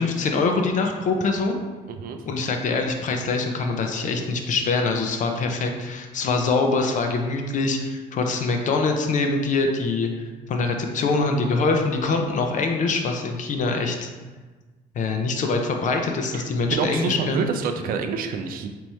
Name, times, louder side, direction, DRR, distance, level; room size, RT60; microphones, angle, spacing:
voice 1, 0.0-1.6 2.3-14.1 14.9-17.4, left 3 dB, 50° left, 3 dB, 0.5 m, -24 dB
voice 2, 1.9-2.2 16.3-16.4 16.7-18.7, right 6 dB, 60° right, 6 dB, 0.4 m, -27 dB
3.4 x 3.0 x 4.1 m, 1.3 s
cardioid pair, 110°, 17 cm